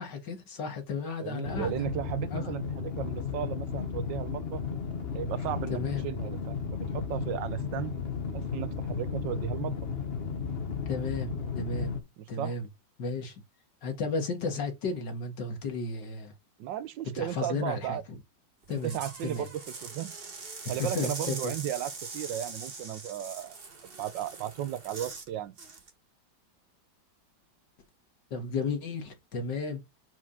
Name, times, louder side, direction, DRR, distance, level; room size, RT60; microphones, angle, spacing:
voice 1, 0.0-1.8 2.3-2.5 5.7-6.1 10.9-11.9 12.3-12.7 13.0-13.4 13.8-16.3 17.2-18.0 18.7-19.0 19.2-19.5 20.8-21.5 28.3-29.8, left 4 dB, 65° left, 2.3 m, -33 dB
voice 2, 1.2-4.6 5.1-7.9 8.3-9.8 12.2-12.6 16.6-18.0 18.8-20.1 20.7-23.6 23.8-25.6, right 11 dB, 75° right, 1.3 m, -35 dB
sound 1, 1.4-12.0, left 6 dB, 35° left, 1.4 m, -34 dB
sound 2, 18.6-25.3 25.6-25.9, right 4 dB, 35° right, 1.4 m, -42 dB
5.7 x 4.8 x 5.6 m
omnidirectional pair, 2.1 m